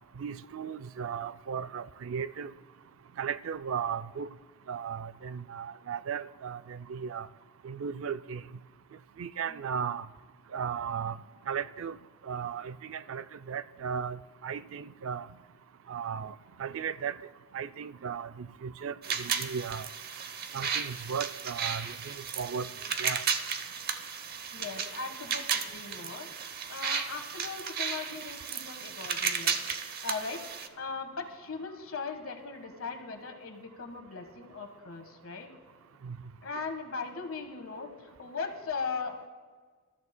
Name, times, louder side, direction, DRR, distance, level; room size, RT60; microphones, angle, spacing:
voice 1, 0.2-2.5 3.2-4.3 4.7-7.3 7.6-8.4 9.2-10.1 10.5-11.2 11.5-12.0 12.2-15.3 15.9-16.3 16.6-17.2 17.5-19.9 20.5-22.7 23.0-23.2 36.0-36.2, right 7 dB, 65° right, 0.4 m, -36 dB
sound 1, 19.0-30.7, right 6 dB, 45° right, 0.7 m, -34 dB
voice 2, 24.5-26.3 26.7-29.6 29.8-30.5 30.8-35.5 36.4-39.2, left 4 dB, 65° left, 1.4 m, -39 dB
27.0 x 13.5 x 2.2 m
head